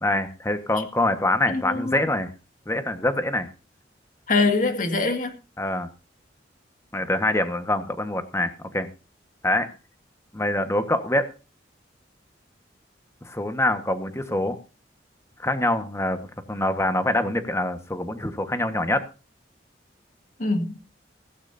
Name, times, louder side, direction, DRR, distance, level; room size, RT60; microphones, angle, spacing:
voice 1, 0.0-2.3 2.7-3.5 5.6-5.9 6.9-8.9 9.4-9.7 10.3-11.3 13.2-14.6 15.4-16.2 16.5-19.0, left 1 dB, 15° left, 1.5 m, -25 dB
voice 2, 1.5-2.0 4.3-5.4 20.4-20.7, left 3 dB, 45° left, 2.1 m, -23 dB
16.5 x 15.5 x 2.8 m
head